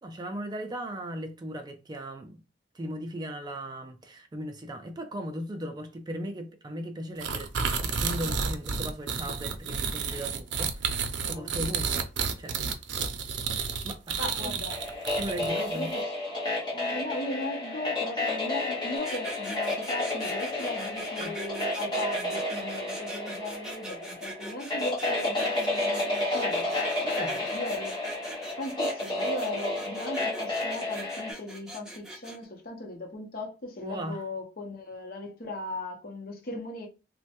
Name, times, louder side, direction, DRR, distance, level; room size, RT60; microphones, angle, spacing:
voice 1, 0.0-2.4 2.7-7.5 7.8-12.1 12.4-12.7 13.6-14.6 15.2-15.9 21.2-21.3 27.0-27.4 33.8-34.2, equal, 25° right, 0.3 m, -37 dB
sound 1, 7.2-15.7, right 5 dB, 90° right, 0.5 m, -31 dB
voice 2, 14.2-14.8 15.7-16.1 16.7-26.8 27.1-28.0 28.6-36.9, left 2 dB, 55° left, 0.8 m, -38 dB
sound 2, 14.7-31.3, left 2 dB, 25° left, 1.0 m, -31 dB
sound 3, 19.0-32.4, right 1 dB, 5° right, 0.7 m, -41 dB
3.1 x 2.1 x 2.8 m
head